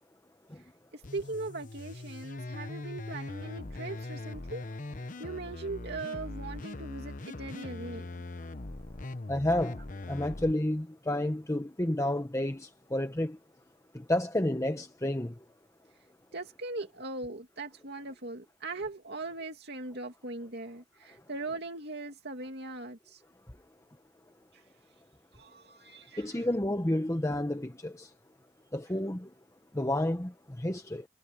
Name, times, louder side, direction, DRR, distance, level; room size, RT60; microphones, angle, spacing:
voice 1, 0.9-4.6 5.2-8.1 16.3-23.2 24.5-24.6 25.3-26.4, right 2 dB, 55° right, 2.7 m, -40 dB
sound 1, 1.0-10.5, left 2 dB, 40° left, 1.0 m, -41 dB
voice 2, 9.3-9.8 10.1-13.4 13.9-15.3 26.2-28.1 28.7-29.3 29.7-30.3 30.6-31.0, left 1 dB, 15° left, 0.9 m, -30 dB
head